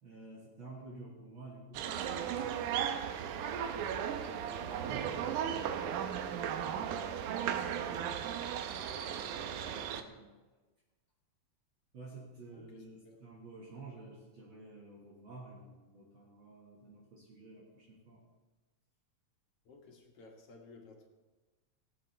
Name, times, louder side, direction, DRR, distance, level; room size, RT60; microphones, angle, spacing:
voice 1, 0.0-3.9 4.4-8.3 9.3-10.3 11.9-18.2, right 2 dB, 45° right, -4 dB, 2.1 m, -52 dB
sound 1, 1.7-10.0, right 8 dB, 85° right, 2.3 m, -36 dB
voice 2, 9.2-9.9 12.5-13.2 19.7-21.1, left 3 dB, 55° left, 1 dB, 2.3 m, -57 dB
19.5 x 8.6 x 3.3 m, 1.2 s
omnidirectional pair, 3.5 m